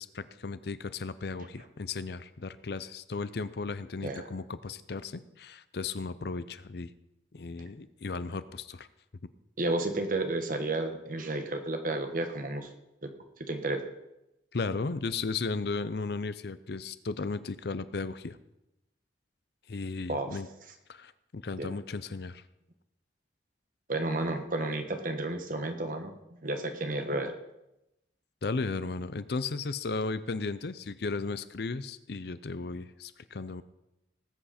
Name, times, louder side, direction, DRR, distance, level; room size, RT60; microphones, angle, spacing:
voice 1, 0.0-6.9 7.3-8.9 14.5-18.4 19.7-20.5 20.9-22.4 28.4-33.6, left 4 dB, 65° left, 14 dB, 0.6 m, -35 dB
voice 2, 9.6-12.7 13.0-13.1 13.4-13.8 20.1-20.4 21.6-21.7 23.9-26.1 26.4-27.4, right 2 dB, 50° right, 6 dB, 1.4 m, -32 dB
19.0 x 8.0 x 4.3 m, 0.89 s
head